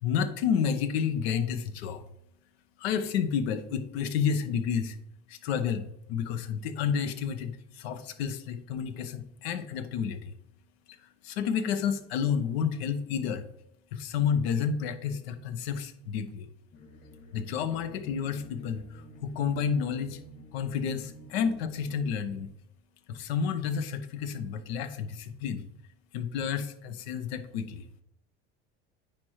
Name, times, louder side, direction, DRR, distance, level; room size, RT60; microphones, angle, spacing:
voice 1, 0.0-2.0 2.8-5.0 5.3-10.3 11.2-13.5 13.9-16.5 17.3-20.2 20.5-22.5 23.1-25.6 26.1-27.8, left 7 dB, 80° left, 10 dB, 0.8 m, -30 dB
sound 1, 16.7-22.3, left 1 dB, 55° left, 2.5 m, -50 dB
9.4 x 4.4 x 3.1 m, 0.78 s
hypercardioid pair, 85°, 31 cm